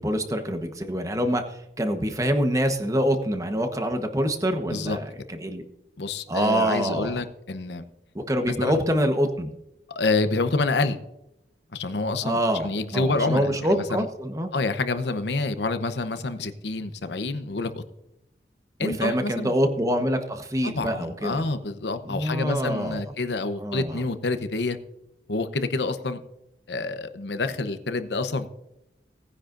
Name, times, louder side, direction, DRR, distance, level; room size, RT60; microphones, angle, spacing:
voice 1, 0.0-5.6 6.3-7.2 8.1-9.5 12.2-14.5 18.8-21.4 22.1-23.0 23.6-24.0, equal, 20° right, 6 dB, 1.1 m, -25 dB
voice 2, 6.0-7.8 8.5-8.8 9.9-11.0 11.7-14.1 14.5-17.8 18.8-19.5 20.6-24.8 25.3-26.2 26.7-28.5, left 3 dB, 75° left, 10 dB, 0.9 m, -27 dB
18.5 x 9.9 x 2.6 m, 0.87 s
head